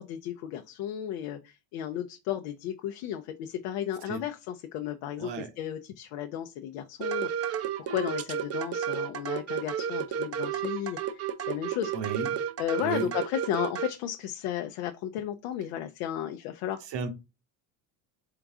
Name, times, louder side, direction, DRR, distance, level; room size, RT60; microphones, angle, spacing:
voice 1, 0.0-7.6 7.9-11.2 11.5-11.9 12.6-16.8, left 11 dB, 85° left, 0.6 m, -34 dB
voice 2, 5.2-5.5 11.9-12.4 12.8-13.1 16.9-17.1, right 6 dB, 60° right, 1.0 m, -33 dB
sound 1, 7.0-13.9, right 8 dB, 35° right, 0.5 m, -32 dB
3.8 x 3.5 x 3.6 m
supercardioid pair, 85°, 48 cm